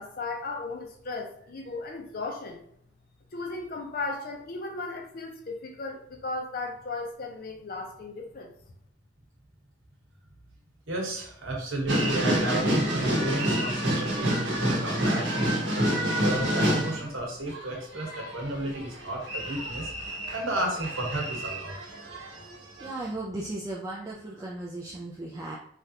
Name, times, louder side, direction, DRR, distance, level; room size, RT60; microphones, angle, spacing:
voice 1, 0.0-2.6 3.3-8.5, left 3 dB, 45° left, 2 dB, 0.5 m, -36 dB
voice 2, 10.9-19.9 20.3-21.7, right 1 dB, 85° right, -1 dB, 1.1 m, -32 dB
sound 1, 11.9-17.1 17.5-22.5 22.8-22.9, equal, 60° right, 0.9 m, -28 dB
voice 3, 22.8-25.6, right 2 dB, 15° right, -4 dB, 0.3 m, -36 dB
3.2 x 2.4 x 2.8 m, 0.69 s
head